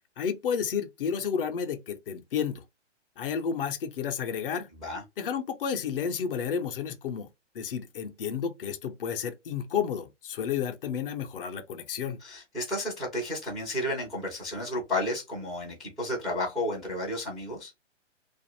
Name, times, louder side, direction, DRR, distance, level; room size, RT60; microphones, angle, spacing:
voice 1, 0.2-2.6 3.2-4.7 5.2-7.3 7.5-12.2, left 7 dB, 50° left, 0.7 m, -31 dB
voice 2, 12.2-17.7, left 1 dB, ahead, 0.4 m, -32 dB
2.5 x 2.4 x 2.8 m
hypercardioid pair, 140°, 36 cm